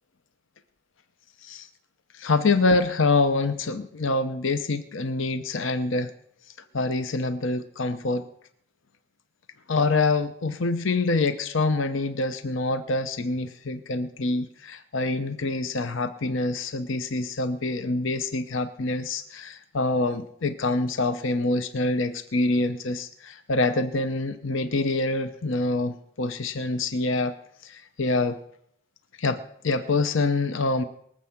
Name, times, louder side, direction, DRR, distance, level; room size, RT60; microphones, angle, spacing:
voice 1, 2.1-6.1 6.7-8.3 9.7-27.4 27.6-28.4 29.2-30.8, left 3 dB, 65° left, 11 dB, 0.8 m, -26 dB
22.5 x 7.6 x 5.9 m, 0.71 s
head